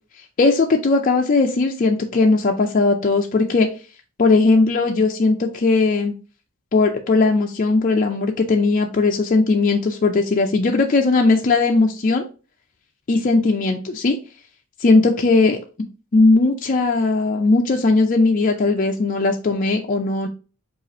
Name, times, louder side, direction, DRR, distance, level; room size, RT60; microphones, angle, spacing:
voice 1, 0.4-3.7 4.2-6.1 6.7-12.2 13.1-14.2 14.8-15.6 16.1-20.3, left 3 dB, 35° left, 2 dB, 0.4 m, -18 dB
4.9 x 2.5 x 4.1 m, 0.35 s
head